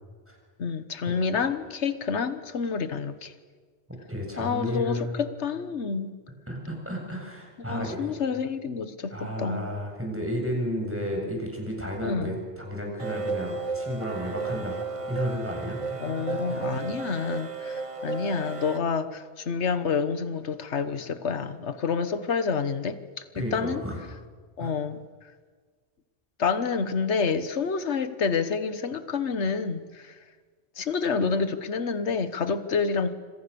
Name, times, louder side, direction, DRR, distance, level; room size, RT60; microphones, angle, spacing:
voice 1, 0.6-3.3 4.4-6.1 7.7-9.1 9.4-9.6 12.0-12.3 16.0-23.0 23.3-23.8 24.6-25.0 26.4-30.1 30.8-33.1, left 5 dB, 80° left, 12 dB, 1.6 m, -28 dB
voice 2, 3.9-5.2 6.5-8.0 9.1-16.9 23.3-24.0 24.6-24.7, equal, 10° right, 0 dB, 7.3 m, -33 dB
sound 1, 13.0-18.8, right 4 dB, 30° right, 1.1 m, -33 dB
27.5 x 26.0 x 7.0 m, 1.5 s
omnidirectional pair, 1.1 m